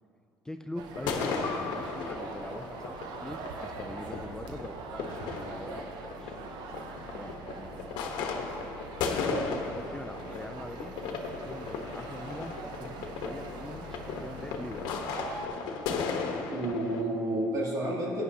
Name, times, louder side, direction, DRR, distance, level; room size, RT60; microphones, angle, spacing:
voice 1, 0.4-6.4 7.1-8.1 9.7-10.9 11.3-15.0, left 1 dB, 10° left, 6 dB, 0.4 m, -43 dB
sound 1, 0.8-15.5, right 4 dB, 75° right, 0.8 m, -43 dB
sound 2, 0.9-17.0, left 5 dB, 80° left, 1.1 m, -36 dB
sound 3, 1.4-6.6, left 7 dB, 45° left, 1.2 m, -47 dB
voice 2, 9.2-9.6 16.5-18.2, right 1 dB, 55° right, -3 dB, 2.6 m, -31 dB
14.5 x 9.6 x 2.8 m, 2.4 s
supercardioid pair, 95°, 8 cm